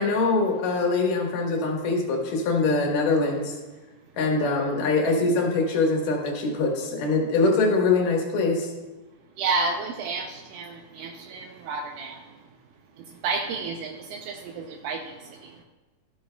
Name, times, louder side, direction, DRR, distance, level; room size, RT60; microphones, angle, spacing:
voice 1, 0.0-3.5 4.2-8.7, left 3 dB, 70° left, 1 dB, 2.9 m, -23 dB
voice 2, 9.4-12.2 13.2-15.5, right 4 dB, 85° right, 4 dB, 1.8 m, -31 dB
12.5 x 9.8 x 2.2 m, 1.2 s
omnidirectional pair, 4.3 m